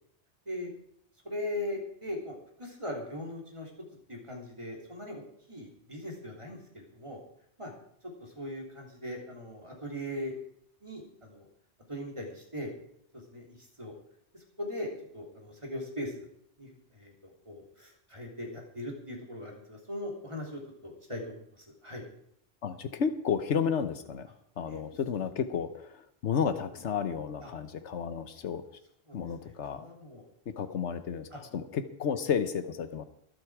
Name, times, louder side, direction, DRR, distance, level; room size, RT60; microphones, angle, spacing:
voice 1, 1.2-3.7 4.1-5.2 5.5-7.2 7.6-7.7 8.2-10.4 10.8-11.5 11.9-12.7 13.1-13.9 14.6-16.3 16.6-22.0 24.7-24.8 27.4-27.5 29.1-29.2 29.4-30.3 31.3-31.4, left 1 dB, 25° right, -1 dB, 3.4 m, -40 dB
voice 2, 22.6-24.3 24.6-26.0 26.2-28.6 29.1-29.8 30.6-31.3 31.5-33.0, left 7 dB, 85° left, 10 dB, 1.2 m, -32 dB
24.0 x 8.0 x 4.8 m, 0.71 s
omnidirectional pair, 1.2 m